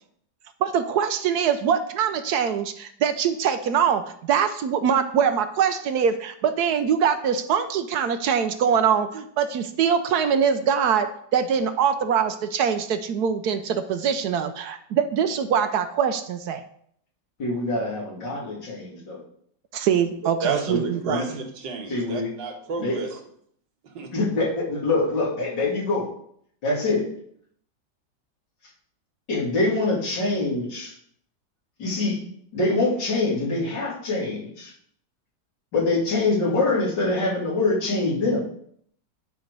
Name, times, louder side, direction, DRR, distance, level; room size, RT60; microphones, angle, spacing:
voice 1, 0.6-16.6 19.7-21.3, right 7 dB, 70° right, 9 dB, 1.1 m, -23 dB
voice 2, 17.4-19.2 20.7-21.2 21.9-22.3 22.8-23.0 24.1-26.1 26.6-27.1 29.3-30.9 31.8-32.2 32.5-34.7 35.7-38.4, left 2 dB, 80° left, -5 dB, 3.4 m, -24 dB
voice 3, 20.4-23.2 24.0-24.1, right 4 dB, 85° right, 2 dB, 2.0 m, -31 dB
10.5 x 4.5 x 5.3 m, 0.66 s
omnidirectional pair, 1.9 m